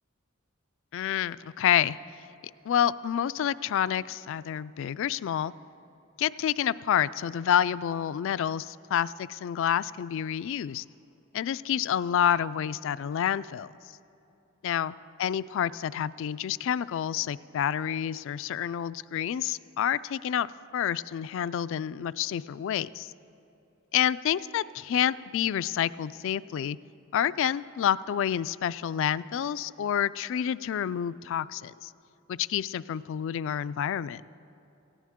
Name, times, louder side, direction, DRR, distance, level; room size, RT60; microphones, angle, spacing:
voice 1, 0.9-2.0 2.7-5.5 6.2-10.8 11.3-13.7 14.6-20.5 20.7-23.1 23.9-26.8 27.1-31.9 32.3-34.2, left 9 dB, 65° left, 16 dB, 0.3 m, -28 dB
17.5 x 16.0 x 3.6 m, 2.8 s
head